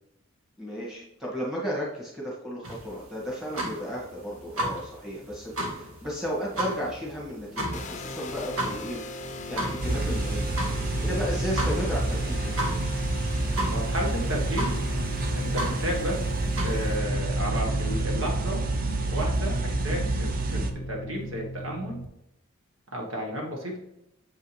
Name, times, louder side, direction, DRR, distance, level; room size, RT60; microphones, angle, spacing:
voice 1, 0.6-9.0 9.5-10.6 11.0-12.5, equal, ahead, -5 dB, 2.1 m, -34 dB
sound 1, 2.6-17.0, right 1 dB, 85° right, 1.7 m, -35 dB
sound 2, 7.7-22.1, equal, 35° left, 0.6 m, -37 dB
sound 3, 9.8-20.7, right 2 dB, 40° right, 0.6 m, -28 dB
voice 2, 13.7-14.8 15.3-16.3 16.6-18.6 19.1-22.0 22.9-23.8, equal, 65° right, -1 dB, 1.6 m, -32 dB
7.3 x 5.4 x 3.4 m, 0.87 s
head